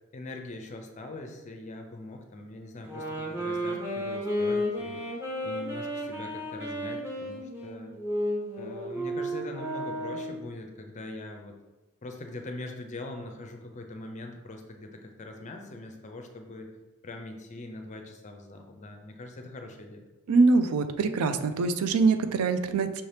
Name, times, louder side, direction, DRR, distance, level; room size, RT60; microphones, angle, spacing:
voice 1, 0.1-5.0 5.4-8.0 8.6-11.6 12.0-16.7 17.0-20.0, left 2 dB, 35° left, 4 dB, 0.5 m, -42 dB
sound 1, 2.8-10.4, equal, 10° right, 1.0 m, -33 dB
voice 2, 20.3-23.0, right 4 dB, 85° right, 10 dB, 0.4 m, -23 dB
5.6 x 2.8 x 3.3 m, 1.1 s
head